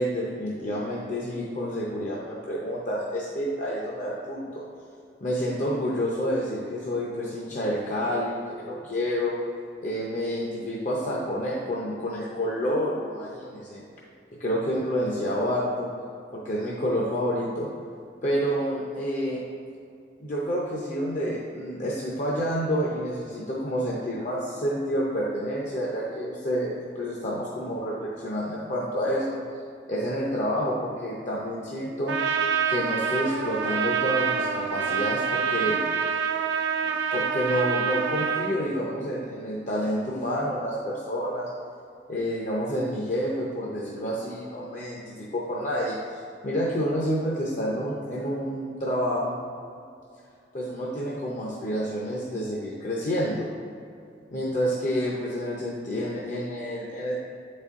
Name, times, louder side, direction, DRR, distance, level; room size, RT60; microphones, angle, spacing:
voice 1, 0.0-4.7 5.2-9.4 9.8-13.8 14.3-15.9 16.3-17.7 18.2-19.4 20.2-29.4 29.9-32.2 32.7-35.8 36.8-41.5 42.1-49.4 50.5-53.5 54.3-57.2, equal, 40° left, -4 dB, 0.6 m, -29 dB
Trumpet, 32.1-38.6, right 6 dB, 70° right, 0.5 m, -26 dB
8.2 x 4.2 x 3.6 m, 2.4 s
head